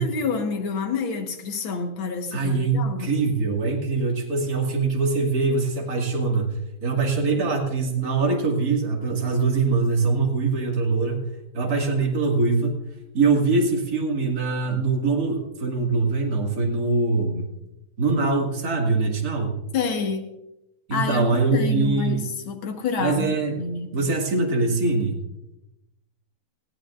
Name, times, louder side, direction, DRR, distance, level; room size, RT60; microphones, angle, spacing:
voice 1, 0.0-3.1 19.7-20.2 20.9-23.9, left 5 dB, 65° left, 5 dB, 2.2 m, -28 dB
voice 2, 2.3-11.2 11.5-12.8 13.1-17.5 18.0-19.6 20.9-22.2 23.0-23.5 23.9-25.2, right 3 dB, 45° right, 0 dB, 2.6 m, -23 dB
19.5 x 16.0 x 2.5 m, 0.91 s
omnidirectional pair, 2.4 m